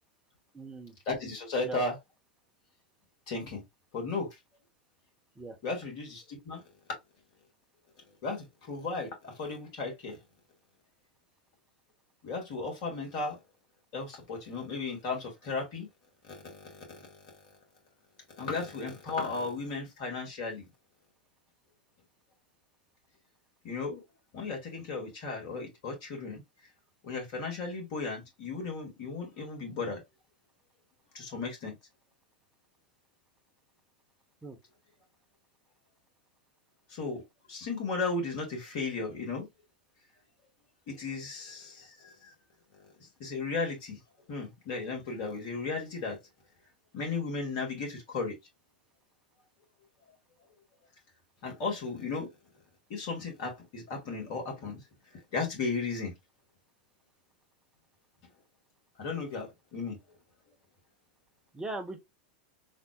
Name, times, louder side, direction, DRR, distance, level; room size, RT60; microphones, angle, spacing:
voice 1, 0.5-1.0 1.6-1.8 5.3-5.6 34.4-34.6 61.5-62.0, right 2 dB, 15° right, 1.2 m, -39 dB
voice 2, 1.1-2.0 3.3-3.6 3.9-4.3 5.6-6.6 8.2-10.2 12.2-13.4 13.9-15.9 16.3-17.0 18.4-20.7 23.6-24.0 24.3-26.4 27.0-30.0 31.1-31.7 36.9-37.2 37.5-39.5 40.9-42.3 43.2-44.0 44.3-46.2 46.9-48.4 51.4-52.3 52.9-54.8 55.3-56.1 59.0-60.0, left 4 dB, 55° left, 2.3 m, -35 dB
4.2 x 4.0 x 2.3 m
hypercardioid pair, 95°, 5 cm